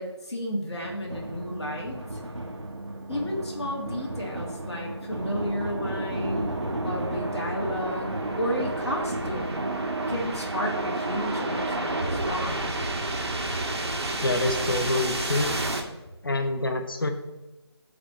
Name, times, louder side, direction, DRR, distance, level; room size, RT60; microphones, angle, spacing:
voice 1, 0.0-2.2 3.1-6.5 6.8-8.1 8.4-9.7 10.1-12.9, equal, 70° left, -3 dB, 3.1 m, -32 dB
sound 1, 0.8-11.8, right 1 dB, 85° right, 1.9 m, -36 dB
sound 2, 5.2-15.8, right 2 dB, 70° right, 1.9 m, -30 dB
voice 2, 14.2-15.6 16.2-17.1, left 2 dB, 50° left, 5 dB, 1.2 m, -26 dB
13.5 x 5.3 x 3.3 m, 1.0 s
figure-of-eight pair, 175°, 14 cm